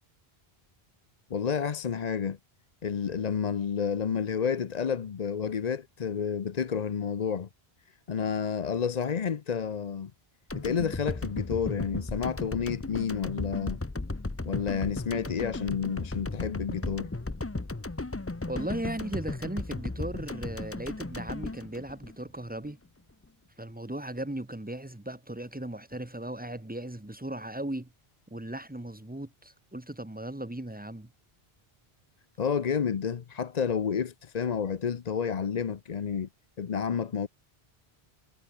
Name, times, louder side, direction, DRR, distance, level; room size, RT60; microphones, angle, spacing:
voice 1, 1.3-2.4 2.8-7.5 8.1-10.1 10.5-13.8 14.4-17.1 32.4-36.3 36.6-37.3, left 7 dB, 45° left, 0.7 m, -30 dB
sound 1, 10.5-22.7, left 2 dB, 15° left, 0.7 m, -35 dB
voice 2, 18.5-22.8 23.6-27.9 28.3-31.1, right 1 dB, 10° right, 1.1 m, -37 dB
omnidirectional pair, 1.0 m